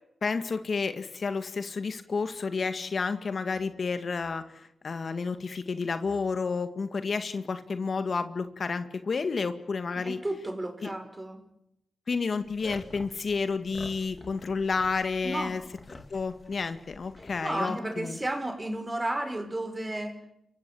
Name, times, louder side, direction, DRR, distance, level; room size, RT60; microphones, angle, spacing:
voice 1, 0.2-10.2 10.8-10.9 12.1-15.6 16.1-18.2, left 4 dB, 60° left, 9 dB, 1.9 m, -30 dB
voice 2, 10.0-11.4 15.2-15.6 17.4-20.3, right 1 dB, 25° right, 8 dB, 5.5 m, -33 dB
sound 1, 12.4-17.4, left 2 dB, 40° left, 4.0 m, -48 dB
29.5 x 15.5 x 8.6 m, 0.81 s
supercardioid pair, 45°, 0 cm